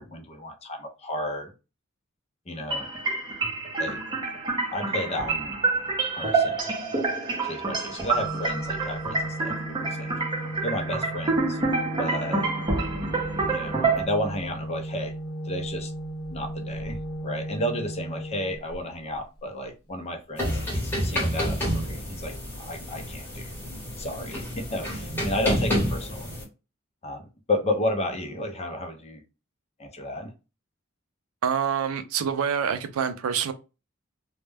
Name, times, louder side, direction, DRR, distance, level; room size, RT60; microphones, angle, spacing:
voice 1, 0.0-1.5 2.5-2.9 3.8-4.0 4.7-5.6 6.1-6.6 7.4-10.2 10.6-11.6 12.0-12.6 13.5-15.2 15.4-15.9 16.3-23.5 24.0-26.3 27.0-29.2 29.8-30.3, left 1 dB, 30° left, 0.6 m, -32 dB
sound 1, 2.7-14.0, right 3 dB, 20° right, 0.7 m, -27 dB
Organ, 8.1-19.0, right 1 dB, 90° left, 0.7 m, -36 dB
sound 2, 20.4-26.4, equal, 10° left, 0.9 m, -29 dB
voice 2, 31.4-33.5, right 7 dB, 85° right, 0.4 m, -26 dB
2.2 x 2.1 x 3.2 m
head